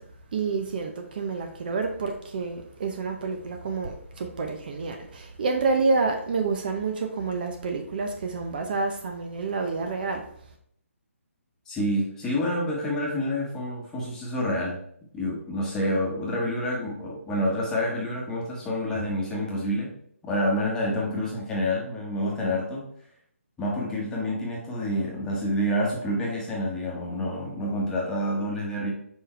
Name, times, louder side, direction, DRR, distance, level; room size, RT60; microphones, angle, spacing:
voice 1, 0.3-10.2, right 4 dB, 40° right, 5 dB, 0.8 m, -28 dB
voice 2, 11.7-14.8 15.1-19.9 20.2-22.9 23.6-28.9, equal, 10° left, -4 dB, 1.2 m, -28 dB
5.1 x 4.5 x 4.4 m, 0.66 s
hypercardioid pair, 165°, 8 cm